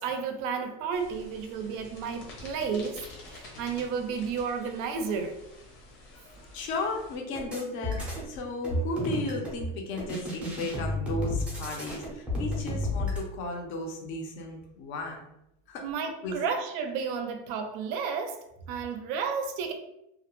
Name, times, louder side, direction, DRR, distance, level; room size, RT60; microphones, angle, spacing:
voice 1, 0.0-3.0 3.3-5.4 15.8-19.7, right 6 dB, 50° right, 6 dB, 0.4 m, -32 dB
sound 1, 0.9-7.2, left 2 dB, 65° left, 0.9 m, -49 dB
voice 2, 6.1-15.3 15.7-15.8 16.2-16.4, left 2 dB, 45° left, 2 dB, 0.6 m, -34 dB
sound 2, 7.3-8.3 8.6-9.6 10.0-13.2, left 1 dB, 5° right, 0.5 m, -32 dB
2.3 x 2.1 x 2.9 m, 0.85 s
cardioid pair, 165°, 29 cm